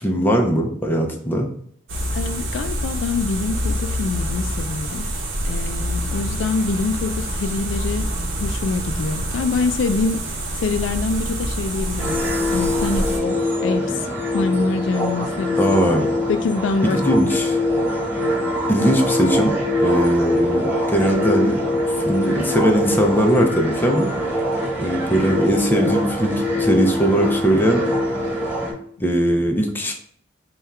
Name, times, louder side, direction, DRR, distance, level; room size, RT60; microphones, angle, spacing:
voice 1, 0.0-1.5 15.6-16.1 16.8-17.6 18.7-19.5 19.8-21.6 21.9-24.1 24.8-27.8 29.0-29.9, equal, 10° left, 2 dB, 0.5 m, -19 dB
sound 1, 1.9-13.2, equal, 80° right, 0.8 m, -26 dB
voice 2, 2.1-5.1 5.4-8.1 8.4-10.2 10.6-12.2 12.5-14.1 14.3-15.6 16.3-17.0, left 4 dB, 75° left, 8 dB, 0.3 m, -25 dB
sound 2, 12.0-28.7, left 1 dB, 10° right, 0.9 m, -23 dB
3.5 x 2.3 x 4.1 m, 0.62 s
head